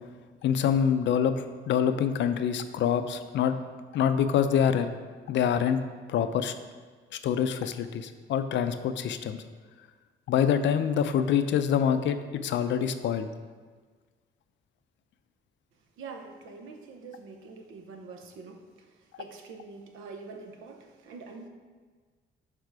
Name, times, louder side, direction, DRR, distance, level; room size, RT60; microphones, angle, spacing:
voice 1, 0.4-3.5 3.9-4.9 5.3-5.8 6.1-6.5 7.2-9.4 10.3-12.2 12.4-13.3, left 8 dB, 70° left, 10 dB, 0.5 m, -25 dB
voice 2, 16.0-18.6 19.2-21.5, right 4 dB, 85° right, 5 dB, 0.7 m, -45 dB
6.7 x 3.6 x 4.7 m, 1.5 s
cardioid pair, 90°, 20 cm